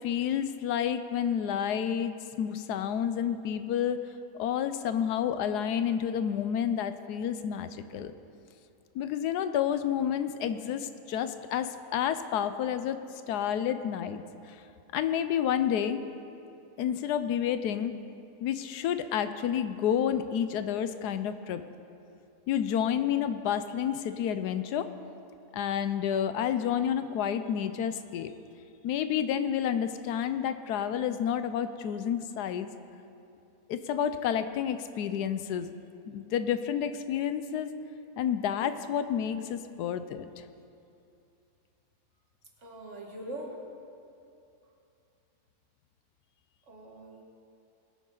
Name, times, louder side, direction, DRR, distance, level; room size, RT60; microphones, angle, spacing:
voice 1, 0.0-4.0 4.3-8.1 8.9-13.0 13.3-14.6 14.9-16.0 16.8-18.0 18.4-21.6 22.5-24.9 25.5-28.3 28.8-32.7 33.7-35.7 36.1-37.7 38.2-40.3, left 9 dB, 85° left, 11 dB, 1.2 m, -30 dB
voice 2, 42.6-43.6 46.7-47.2, right 1 dB, 50° right, 0 dB, 1.9 m, -42 dB
20.5 x 9.3 x 3.9 m, 2.7 s
omnidirectional pair, 1.7 m